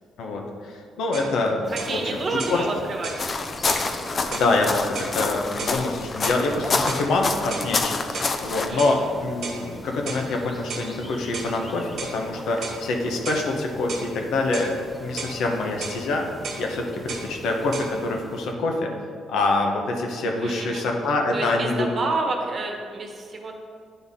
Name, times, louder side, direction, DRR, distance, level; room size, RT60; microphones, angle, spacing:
voice 1, 0.2-2.6 4.3-16.3 16.6-18.9 19.3-21.9, left 2 dB, 80° left, 2 dB, 0.9 m, -25 dB
sound 1, 1.1-1.3 1.8-2.0 2.4-2.6 3.0-3.2 3.7-3.9 4.3-4.5 5.0-5.2 5.6-5.8 6.2-6.4 6.9-7.1 7.5-7.7 8.1-8.4 8.8-9.0 9.4-9.6 10.1-10.3 10.7-10.9 11.3-11.5 12.0-12.2 12.6-12.8 13.3-13.5 13.9-14.1 14.5-14.7 15.2-15.4 15.8-16.0 16.4-16.7 17.1-17.3 17.7-17.9, right 4 dB, 70° right, 1.1 m, -34 dB
sound 2, 1.6-18.5, left 1 dB, 20° left, 0.8 m, -41 dB
voice 2, 1.7-3.2 8.7-8.9 20.4-20.9 21.3-23.5, right 3 dB, 50° right, 2 dB, 1.1 m, -29 dB
sound 3, 3.2-8.7, left 4 dB, 40° left, 0.5 m, -27 dB
10.0 x 4.0 x 3.6 m, 2.1 s
cardioid pair, 90°, 0 cm